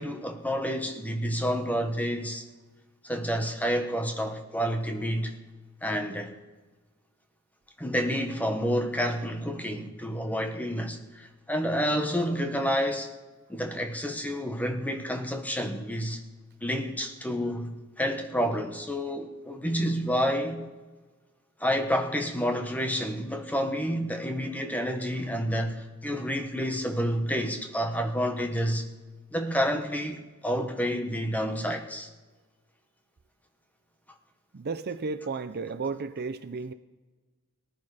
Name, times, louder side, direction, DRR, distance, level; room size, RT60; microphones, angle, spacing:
voice 1, 0.0-2.4 3.0-5.3 5.8-6.3 7.8-13.1 13.5-16.2 16.6-20.6 21.6-28.9 29.3-32.1, equal, 5° left, 1.2 m, -29 dB
voice 2, 34.5-36.7, right 4 dB, 45° right, 0.5 m, -33 dB
18.5 x 11.0 x 4.9 m
head